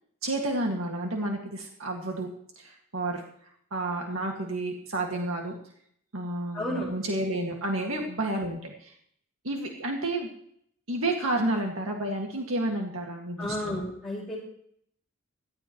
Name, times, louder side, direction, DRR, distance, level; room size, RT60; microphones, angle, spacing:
voice 1, 0.2-2.3 2.6-3.2 3.7-5.5 6.1-8.9 9.4-10.3 10.9-13.8, right 1 dB, 90° right, 1 dB, 2.0 m, -30 dB
voice 2, 6.5-6.9 7.8-8.0 13.4-14.3, left 1 dB, ahead, -12 dB, 5.5 m, -32 dB
17.5 x 13.5 x 3.1 m, 0.66 s
head